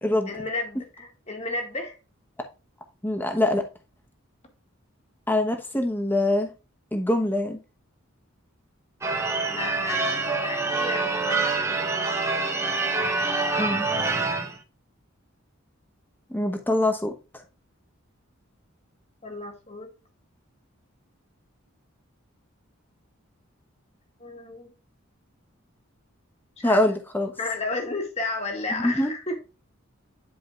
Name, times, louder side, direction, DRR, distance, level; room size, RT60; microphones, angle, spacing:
voice 1, 0.3-2.0 9.5-12.2 19.2-19.9 24.2-24.7 26.6-26.8 27.4-29.4, left 2 dB, 30° left, 1.9 m, -33 dB
voice 2, 3.0-3.6 5.3-6.5 6.9-7.6 13.6-13.9 16.3-17.1 26.6-27.3 28.7-29.1, left 1 dB, 10° left, 1.0 m, -24 dB
Church bell / Car / Alarm, 9.0-14.6, right 3 dB, 15° right, 1.0 m, -26 dB
10.5 x 5.0 x 2.5 m
head